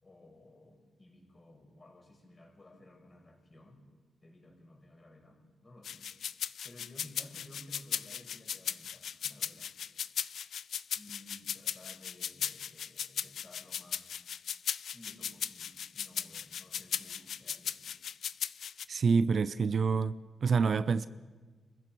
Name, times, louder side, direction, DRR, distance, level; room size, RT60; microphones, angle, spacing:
voice 1, 0.0-3.8 4.2-6.1 6.6-9.7 10.9-14.2 14.9-18.0, left 1 dB, 30° left, 6.0 m, -55 dB
sound 1, 5.8-18.8, left 8 dB, 75° left, 0.6 m, -37 dB
voice 2, 18.9-20.1 20.4-21.1, right 5 dB, 55° right, 0.6 m, -27 dB
27.0 x 15.5 x 6.2 m
cardioid pair, 100°, 0 cm